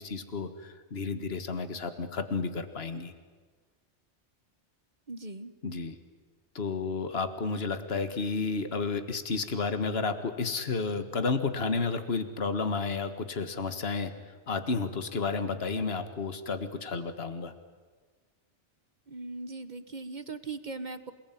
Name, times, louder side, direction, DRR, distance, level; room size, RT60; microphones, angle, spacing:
voice 1, 0.0-3.1 5.6-6.0 6.6-14.1 14.5-17.5, left 4 dB, 60° left, 9 dB, 1.9 m, -31 dB
voice 2, 5.1-5.5 19.1-21.1, right 3 dB, 40° right, 11 dB, 1.4 m, -39 dB
28.0 x 19.5 x 9.3 m, 1.5 s
omnidirectional pair, 1.2 m